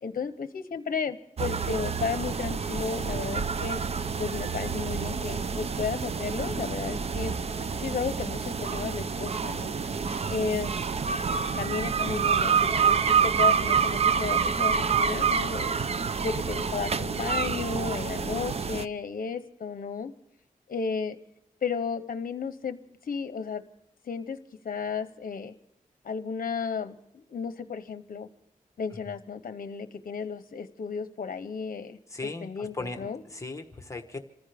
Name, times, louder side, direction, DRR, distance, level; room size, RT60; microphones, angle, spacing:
voice 1, 0.0-3.8 4.2-7.3 7.8-9.8 10.3-10.8 11.6-15.7 16.2-20.1 20.7-21.2 21.6-23.6 24.0-24.4 24.6-25.5 26.0-28.3 28.8-32.0 32.4-33.2, left 5 dB, 65° left, 10 dB, 0.8 m, -33 dB
sound 1, 1.4-18.8, right 6 dB, 45° right, 0.5 m, -27 dB
voice 2, 32.1-34.2, left 3 dB, 20° left, 5 dB, 1.2 m, -38 dB
27.5 x 15.0 x 3.4 m, 0.83 s
wide cardioid pair, 170°, 14 cm